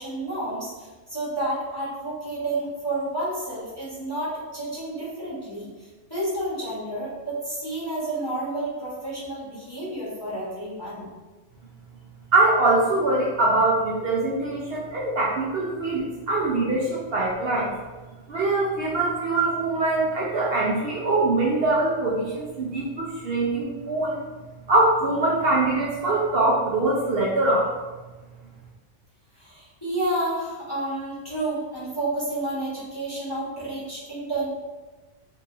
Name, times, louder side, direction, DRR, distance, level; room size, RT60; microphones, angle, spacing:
voice 1, 0.0-11.1 29.4-34.5, right 1 dB, 20° left, -9 dB, 1.1 m, -30 dB
voice 2, 12.3-17.7 18.3-24.2 24.7-27.7, right 2 dB, 60° right, -4 dB, 0.7 m, -23 dB
2.9 x 2.7 x 3.7 m, 1.2 s
omnidirectional pair, 1.2 m